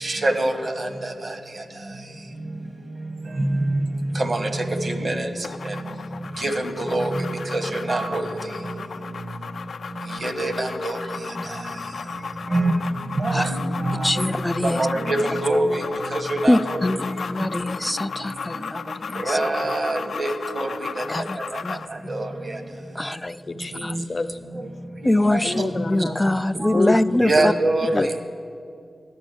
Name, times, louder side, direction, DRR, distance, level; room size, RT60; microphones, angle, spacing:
voice 1, 0.0-0.7 3.5-3.6 4.2-5.3 6.4-6.5 6.8-7.1 7.5-7.6 7.9-8.2 10.2-11.0 12.5-12.7 13.2-14.1 14.6-15.8 16.1-16.9 19.3-20.3 20.6-20.7 21.0-21.1 22.1-22.3 25.3-25.7 26.6-26.8 27.2-28.1, right 2 dB, 55° right, 6 dB, 1.2 m, -24 dB
sound 1, 5.4-21.9, left 5 dB, 85° left, 0.4 m, -35 dB
sound 2, 13.4-20.9, left 1 dB, 80° right, 3.5 m, -43 dB
voice 2, 14.0-14.9 16.5-19.4 21.1-21.8 23.0-23.4 23.8-24.0 25.0-27.5 27.9-28.2, left 1 dB, 15° left, 15 dB, 0.3 m, -23 dB
voice 3, 23.2-24.4 25.4-26.4 26.7-27.0 27.4-27.5, left 3 dB, 50° left, 10 dB, 0.7 m, -28 dB
12.5 x 6.2 x 9.1 m, 2.4 s
cardioid pair, 55°, 0 cm